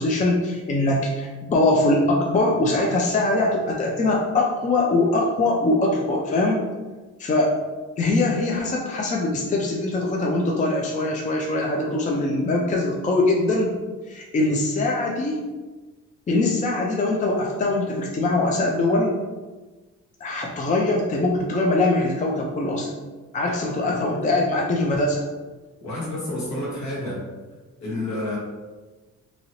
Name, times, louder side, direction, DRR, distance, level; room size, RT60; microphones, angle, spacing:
voice 1, 0.0-6.6 7.2-7.5 8.0-13.8 14.1-15.4 16.3-19.2 20.2-22.9 23.3-25.3, left 2 dB, 25° left, -1 dB, 0.4 m, -22 dB
voice 2, 25.8-27.2 27.8-28.4, left 1 dB, 65° left, -4 dB, 1.3 m, -29 dB
2.9 x 2.8 x 2.7 m, 1.3 s
cardioid pair, 90°, 30 cm